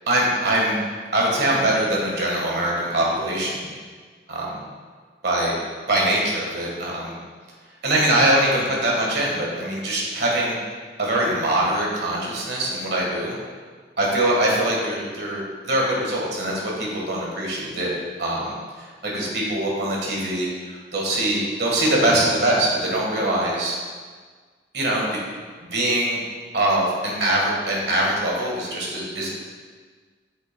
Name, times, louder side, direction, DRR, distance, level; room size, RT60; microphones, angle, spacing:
voice 1, 0.1-0.8 1.1-3.6 4.3-4.5 5.2-5.5 5.9-7.1 7.8-10.6 11.0-13.4 14.0-17.9 18.2-23.7 24.7-25.2 25.7-26.2 26.5-29.3, right 1 dB, 65° right, -3 dB, 1.5 m, -23 dB
7.6 x 5.7 x 2.2 m, 1.5 s
head